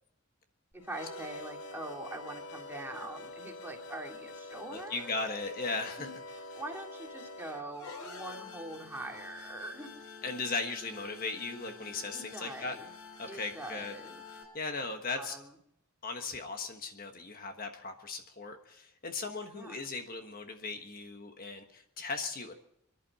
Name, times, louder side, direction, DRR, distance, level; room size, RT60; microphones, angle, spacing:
sound 1, 0.7-14.4, left 3 dB, 90° left, 3.8 m, -47 dB
voice 1, 0.7-5.2 6.0-9.9 12.1-12.9 13.2-14.2 15.1-15.5 19.5-19.8, right 1 dB, 10° right, 1 dB, 2.3 m, -43 dB
voice 2, 4.7-6.1 10.2-12.7 13.2-13.9 14.5-15.4 16.0-22.5, left 3 dB, 40° left, 5 dB, 1.3 m, -37 dB
27.5 x 11.0 x 4.2 m, 0.74 s
head